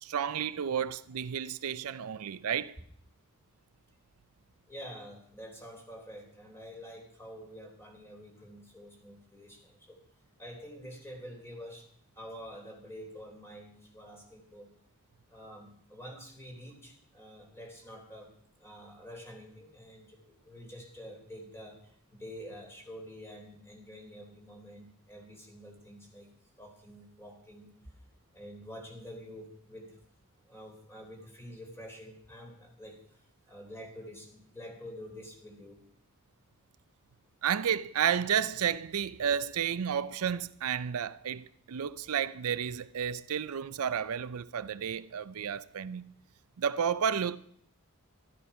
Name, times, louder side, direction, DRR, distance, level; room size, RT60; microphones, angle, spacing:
voice 1, 0.0-2.8 37.4-46.1 46.6-47.4, right 8 dB, 70° right, 0.5 m, -31 dB
voice 2, 4.7-10.0 10.4-11.9 12.2-14.7 15.3-18.3 18.6-26.3 26.6-27.9 28.3-30.0 30.4-35.8, equal, 10° left, 3.5 m, -48 dB
13.0 x 12.5 x 5.6 m
head